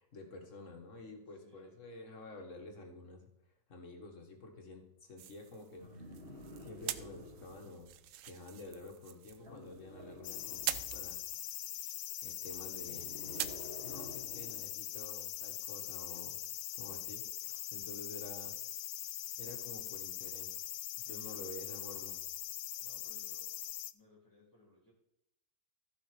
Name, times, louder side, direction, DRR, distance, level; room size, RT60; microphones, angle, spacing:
voice 1, 0.0-3.2 3.7-5.9 6.6-8.0 8.3-11.2 11.5-11.7 12.2-13.1 13.8-16.4 16.8-18.5 19.4-20.6 21.1-22.2, left 2 dB, 45° left, 3 dB, 2.0 m, -50 dB
voice 2, 1.2-1.8 20.9-21.7 22.8-23.6 23.9-24.9, left 2 dB, 10° left, -4 dB, 2.4 m, -62 dB
sound 1, 5.2-13.6, right 12 dB, 70° right, 0.8 m, -45 dB
sound 2, 5.8-7.7 9.4-11.2 12.5-14.7 16.1-16.2, left 1 dB, 30° right, 2.5 m, -51 dB
sound 3, 10.2-23.9, left 14 dB, 75° left, 1.1 m, -42 dB
14.5 x 5.7 x 5.1 m, 0.82 s
omnidirectional pair, 1.8 m